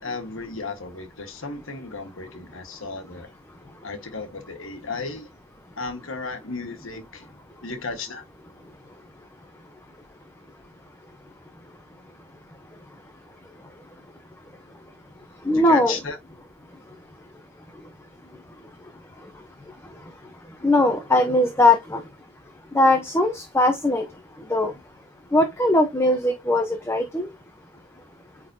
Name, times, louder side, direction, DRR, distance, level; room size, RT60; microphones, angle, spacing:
voice 1, 0.0-3.3 3.8-5.3 5.8-7.2 7.6-8.2 15.5-16.2, left 4 dB, 65° left, 1.5 m, -34 dB
voice 2, 15.5-16.0 20.6-22.0 22.7-24.0 24.5-24.7 25.3-27.3, left 1 dB, 10° left, 0.8 m, -20 dB
9.1 x 3.9 x 2.7 m
head